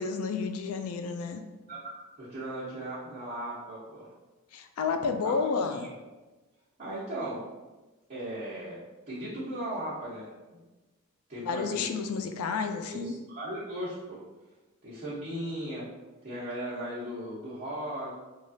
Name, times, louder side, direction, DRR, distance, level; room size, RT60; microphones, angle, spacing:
voice 1, 0.0-1.4 4.5-5.9 11.4-13.1, left 5 dB, 75° left, 7 dB, 0.3 m, -31 dB
voice 2, 1.7-4.1 5.0-5.9 6.8-7.4 8.1-10.3 11.3-11.8 12.9-14.2 14.8-15.9 16.2-18.1, right 1 dB, 30° right, -14 dB, 0.9 m, -37 dB
3.2 x 2.4 x 2.7 m, 1.2 s
head